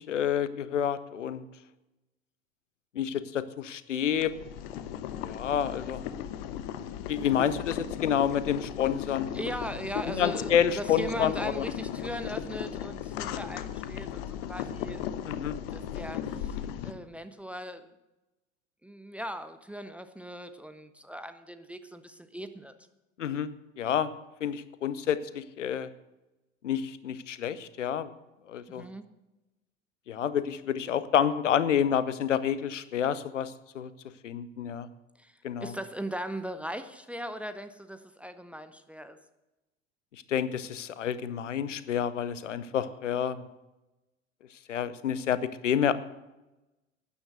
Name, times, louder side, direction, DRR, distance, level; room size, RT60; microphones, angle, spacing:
voice 1, 0.0-1.4 2.9-4.3 5.2-6.0 7.1-9.3 10.0-11.6 15.3-15.5 23.2-23.5 23.8-24.1 24.4-25.9 26.6-28.1 28.5-28.9 30.1-33.9 34.2-34.9 35.4-35.7 40.3-43.4 44.7-45.9, left 9 dB, 70° left, 16 dB, 0.8 m, -29 dB
Boiling, 4.2-16.9, left 10 dB, 50° left, 1.0 m, -36 dB
voice 2, 9.3-15.1 15.7-17.9 18.8-22.7 28.7-29.1 35.2-39.2, equal, 5° right, 11 dB, 0.6 m, -39 dB
12.5 x 9.7 x 6.5 m, 1.0 s
figure-of-eight pair, 75°, 38 cm